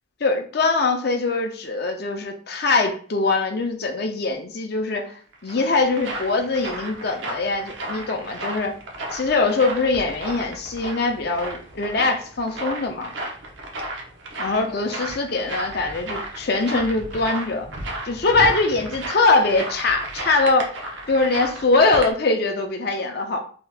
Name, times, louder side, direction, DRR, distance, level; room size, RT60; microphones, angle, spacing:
voice 1, 0.2-5.2 5.4-8.7 9.1-13.1 14.4-17.7 18.1-20.7 21.1-23.4, left 3 dB, 50° left, 3 dB, 0.5 m, -22 dB
sound 1, 5.1-22.1, right 1 dB, 65° right, 0.7 m, -34 dB
2.8 x 2.4 x 3.3 m, 0.43 s
head